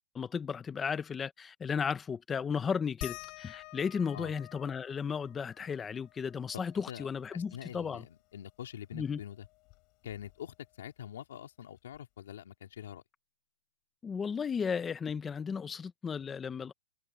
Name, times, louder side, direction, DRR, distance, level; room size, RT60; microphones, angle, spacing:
voice 1, 0.1-8.0 8.9-9.2 14.0-16.7, left 6 dB, 10° left, 0.7 m, -34 dB
sound 1, 3.0-8.1 8.5-8.6 8.9-10.7 11.9-12.0 12.8-12.9, left 27 dB, 30° left, 4.2 m, -50 dB
voice 2, 7.3-9.5 10.0-13.0, left 10 dB, 75° left, 2.5 m, -45 dB
supercardioid pair, 170°, 0 cm